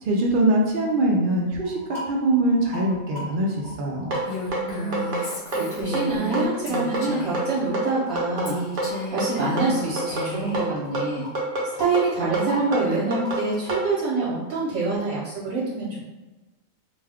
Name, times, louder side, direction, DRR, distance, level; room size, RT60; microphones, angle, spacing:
voice 1, 0.0-4.2, right 1 dB, 85° right, -2 dB, 0.4 m, -23 dB
sound 1, 1.6-15.0, equal, 35° left, 1.1 m, -43 dB
sound 2, 4.1-13.9, right 2 dB, 50° right, 0.7 m, -27 dB
Female speech woman speaking, 4.3-7.6 8.4-10.7, left 1 dB, 65° left, 0.9 m, -33 dB
voice 2, 4.5-8.6 9.1-11.2 11.8-16.0, right 3 dB, 65° right, -8 dB, 1.1 m, -26 dB
2.5 x 2.2 x 3.4 m, 1.1 s
omnidirectional pair, 1.4 m